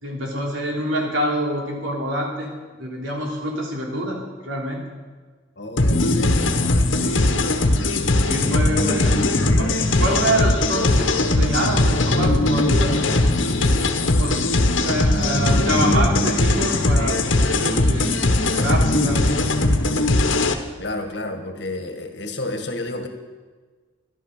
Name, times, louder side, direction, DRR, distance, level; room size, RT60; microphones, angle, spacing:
voice 1, 0.0-2.5 2.8-4.8 5.9-6.2 7.0-7.7 8.3-13.7 14.2-14.5 14.8-19.5, right 1 dB, 90° right, -1 dB, 3.4 m, -27 dB
voice 2, 5.6-6.5 10.8-11.4 20.8-23.1, left 2 dB, 60° left, 6 dB, 1.7 m, -31 dB
sound 1, 5.8-20.5, left 2 dB, 80° left, 1.2 m, -19 dB
13.5 x 11.0 x 6.7 m, 1.4 s
head